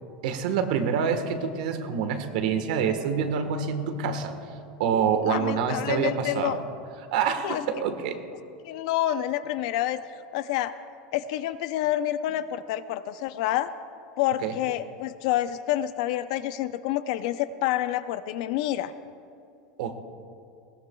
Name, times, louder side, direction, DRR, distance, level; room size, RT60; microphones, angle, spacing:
voice 1, 0.2-4.3 4.8-6.6 7.1-8.2 14.4-14.5 19.8-20.0, right 7 dB, 70° right, 7 dB, 1.3 m, -26 dB
voice 2, 5.2-6.6 7.4-7.6 8.6-10.7 11.1-13.7 14.2-18.9, left 13 dB, 55° left, 12 dB, 0.6 m, -28 dB
20.5 x 19.0 x 2.3 m, 2.5 s
supercardioid pair, 175°, 4 cm